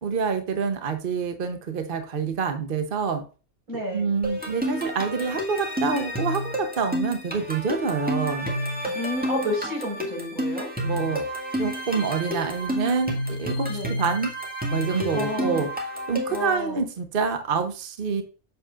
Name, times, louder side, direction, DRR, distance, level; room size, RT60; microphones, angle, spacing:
voice 1, 0.0-3.2 3.9-8.5 10.8-11.2 11.6-14.3 14.7-15.7 16.1-18.2, right 5 dB, 45° right, 7 dB, 1.0 m, -27 dB
voice 2, 3.7-4.1 8.9-10.7 13.7-13.9 14.9-15.7 16.3-16.8, left 1 dB, 85° right, -2 dB, 5.1 m, -30 dB
sound 1, 4.2-16.5, equal, 5° right, 1.8 m, -30 dB
7.6 x 7.4 x 2.5 m, 0.35 s
omnidirectional pair, 1.5 m